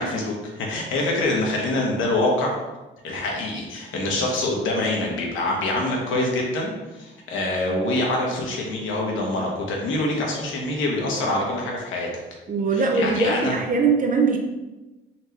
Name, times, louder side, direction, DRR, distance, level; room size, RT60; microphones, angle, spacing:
voice 1, 0.0-2.6 3.0-12.1 12.7-13.6, left 2 dB, 80° left, -1 dB, 1.1 m, -25 dB
voice 2, 12.5-14.4, right 4 dB, 40° right, 2 dB, 0.8 m, -21 dB
4.3 x 3.2 x 2.9 m, 1.1 s
cardioid pair, 90°, 20 cm